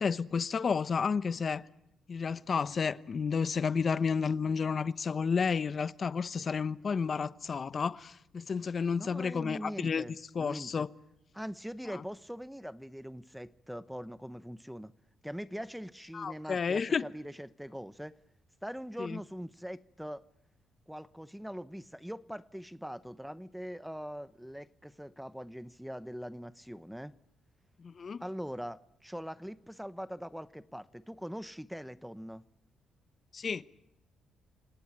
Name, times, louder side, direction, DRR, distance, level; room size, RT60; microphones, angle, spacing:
voice 1, 0.0-1.6 2.1-10.0 10.3-10.9 11.9-12.0 16.1-17.0 19.0-19.2 27.8-28.2 33.3-33.6, left 5 dB, 45° left, 0.9 m, -31 dB
voice 2, 9.0-10.9 11.3-14.9 15.2-18.1 18.6-20.2 20.9-27.1 28.2-32.4, equal, ahead, 0.9 m, -42 dB
28.5 x 18.0 x 8.9 m
cardioid pair, 90°, 0 cm